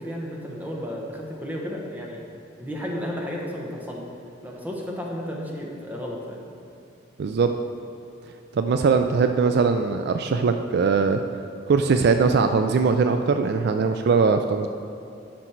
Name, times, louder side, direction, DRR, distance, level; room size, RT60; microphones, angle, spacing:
voice 1, 0.0-2.2 2.6-4.1 4.4-6.5, equal, 10° right, -1 dB, 1.1 m, -33 dB
voice 2, 7.2-7.5 8.5-11.2 11.7-14.7, right 5 dB, 55° right, 7 dB, 0.3 m, -21 dB
10.0 x 6.0 x 4.5 m, 2.7 s
head